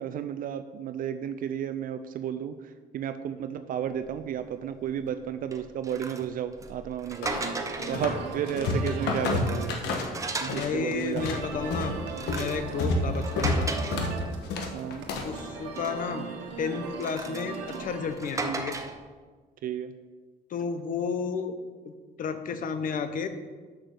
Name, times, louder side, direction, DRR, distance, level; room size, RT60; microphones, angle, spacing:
voice 1, 0.0-7.3 7.8-10.0 10.4-11.4 12.8-13.1 14.7-15.1 18.4-18.6 19.6-19.9, right 9 dB, 55° right, 10 dB, 0.5 m, -33 dB
sound 1, 4.1-4.3 4.7-5.0 5.5-8.2 8.6-10.8 11.3-14.6 14.9-16.1 16.8-19.1, right 3 dB, 20° right, 0.7 m, -37 dB
sound 2, 7.2-8.2 8.5-10.7 11.0-15.4, left 2 dB, 85° left, 1.3 m, -29 dB
sound 3, 7.3-18.1, right 5 dB, 90° right, 1.3 m, -39 dB
voice 2, 10.5-11.9 12.3-13.7 15.2-16.3 16.6-18.8 20.5-21.6 22.2-23.3, left 6 dB, 55° left, 9 dB, 0.9 m, -32 dB
6.6 x 6.2 x 6.4 m, 1.4 s
cardioid pair, 110°, 17 cm